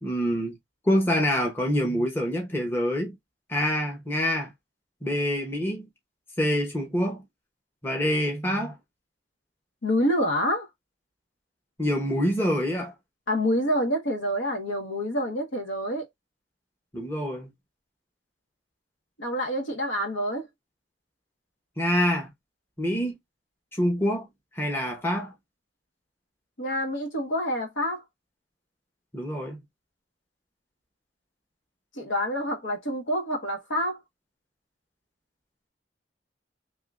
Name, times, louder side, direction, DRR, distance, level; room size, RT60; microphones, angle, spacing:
voice 1, 0.0-0.5 0.8-3.2 3.5-4.5 5.0-5.9 6.4-7.2 7.8-8.8 11.8-12.9 16.9-17.5 21.8-22.3 22.8-23.2 23.7-24.3 24.5-25.3 29.1-29.6, equal, 10° left, 0.9 m, -26 dB
voice 2, 9.8-10.7 13.3-16.1 19.2-20.5 26.6-28.0 31.9-34.0, equal, 80° left, 1.3 m, -27 dB
3.7 x 3.0 x 2.4 m
head